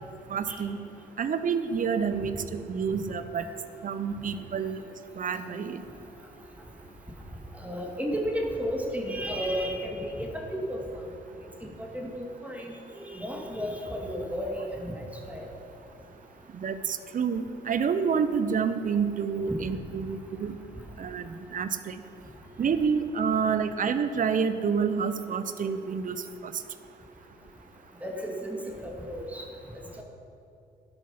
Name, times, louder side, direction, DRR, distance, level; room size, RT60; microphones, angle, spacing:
voice 1, 0.3-0.8 1.2-3.5 3.8-4.8 5.2-5.8 16.5-20.6 21.0-22.0 22.6-26.2 26.4-26.5, right 6 dB, 40° right, 11 dB, 0.8 m, -28 dB
voice 2, 7.6-10.8 11.6-15.5 28.0-29.4, equal, 5° right, 0 dB, 2.4 m, -33 dB
11.0 x 8.0 x 5.6 m, 2.7 s
figure-of-eight pair, 50°, 21 cm